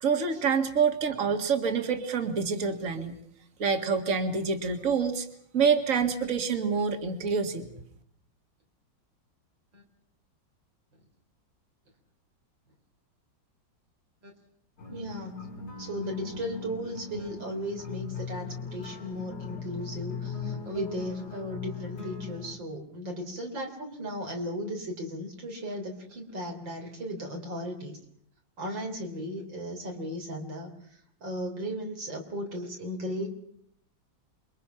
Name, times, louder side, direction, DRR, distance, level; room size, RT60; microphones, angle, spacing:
voice 1, 0.0-3.2 3.6-5.3 5.5-7.7, right 5 dB, 45° right, 6 dB, 2.4 m, -27 dB
sound 1, 14.8-22.6, left 5 dB, 75° left, 4.6 m, -39 dB
voice 2, 14.9-15.4 15.8-28.0 28.6-30.7 31.2-33.3, equal, 90° right, 2 dB, 4.6 m, -36 dB
28.0 x 23.0 x 5.8 m, 0.68 s
omnidirectional pair, 2.0 m